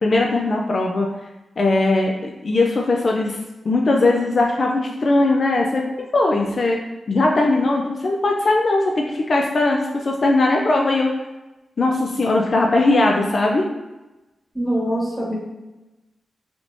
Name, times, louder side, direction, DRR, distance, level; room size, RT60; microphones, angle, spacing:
voice 1, 0.0-1.1 1.6-3.4 3.6-5.8 6.1-6.8 7.1-11.1 11.8-13.6, left 2 dB, 55° left, 0 dB, 0.3 m, -19 dB
voice 2, 14.5-15.3, right 1 dB, ahead, -6 dB, 1.3 m, -23 dB
3.3 x 3.1 x 2.5 m, 1.0 s
cardioid pair, 85°, 0 cm